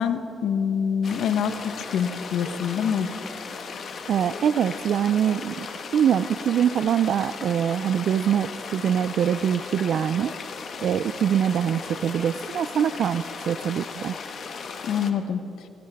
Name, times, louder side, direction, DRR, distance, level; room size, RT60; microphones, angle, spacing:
voice 1, 0.0-3.1 14.8-15.4, left 7 dB, 75° left, 10 dB, 0.9 m, -25 dB
sound 1, 1.0-15.1, left 5 dB, 55° left, 1.3 m, -37 dB
voice 2, 4.1-5.7 5.9-10.3 10.8-14.1, right 9 dB, 65° right, 14 dB, 0.3 m, -24 dB
21.0 x 16.5 x 3.5 m, 2.9 s
cardioid pair, 90°, 0 cm